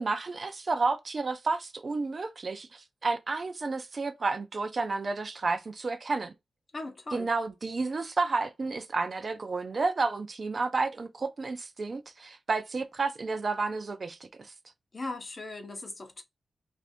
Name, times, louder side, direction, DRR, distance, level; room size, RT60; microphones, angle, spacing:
voice 1, 0.0-6.3 7.1-14.5, right 3 dB, 40° right, 0.4 m, -31 dB
voice 2, 6.7-7.3 14.9-16.2, left 2 dB, 35° left, 0.6 m, -38 dB
2.5 x 2.5 x 3.4 m
wide cardioid pair, 110°, 0 cm